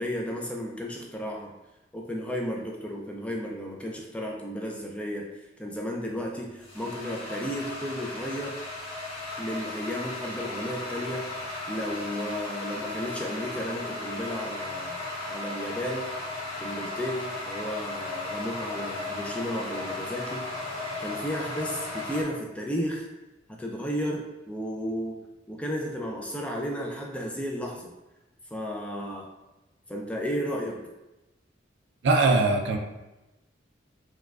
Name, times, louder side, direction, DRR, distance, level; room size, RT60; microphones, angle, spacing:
voice 1, 0.0-1.5 1.9-5.3 5.6-8.6 9.4-11.3 11.7-15.0 15.3-16.1 16.6-20.4 20.8-23.1 23.5-25.2 25.5-27.9 28.5-29.3 29.9-30.8, equal, 5° left, -1 dB, 0.4 m, -33 dB
sound 1, 6.1-22.2, left 2 dB, 30° left, 0.8 m, -36 dB
voice 2, 32.0-32.8, right 3 dB, 65° right, 3 dB, 0.4 m, -21 dB
4.5 x 2.2 x 2.3 m, 1.0 s
head